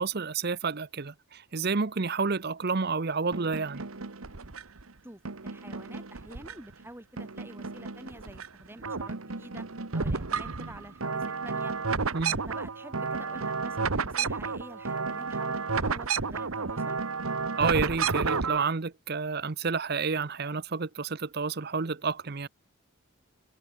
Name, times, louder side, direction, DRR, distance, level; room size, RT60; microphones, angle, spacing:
voice 1, 0.0-3.8 12.1-12.3 17.6-22.5, right 4 dB, 50° right, 0.8 m, -30 dB
sound 1, 3.3-4.8 5.3-6.8 7.2-8.5 8.7-18.7, right 4 dB, 90° right, 1.4 m, -32 dB
voice 2, 5.0-9.7 9.9-11.8 12.2-17.0, right 1 dB, 10° right, 2.0 m, -48 dB
head